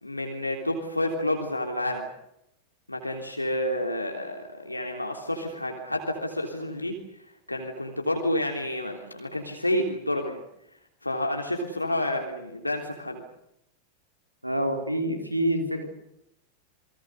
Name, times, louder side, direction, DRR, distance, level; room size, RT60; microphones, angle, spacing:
voice 1, 0.0-2.1 2.9-7.0 7.5-10.4 11.0-13.2, left 1 dB, 85° left, 3 dB, 3.4 m, -29 dB
voice 2, 14.4-15.9, right 1 dB, 90° right, 6 dB, 3.5 m, -27 dB
29.5 x 22.5 x 6.7 m, 0.81 s
figure-of-eight pair, 90°, 0 cm